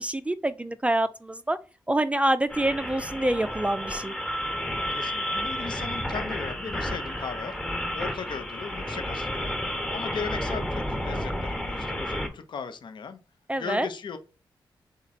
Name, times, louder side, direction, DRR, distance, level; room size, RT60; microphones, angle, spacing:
voice 1, 0.0-1.6 1.9-4.1 13.5-13.9, right 1 dB, 15° right, 0.3 m, -26 dB
sound 1, 2.5-12.3, equal, 10° left, 1.0 m, -31 dB
voice 2, 4.9-7.6 7.9-9.5 9.9-13.2 13.6-14.2, left 6 dB, 60° left, 0.6 m, -37 dB
3.6 x 2.9 x 4.1 m
cardioid pair, 65°, 9 cm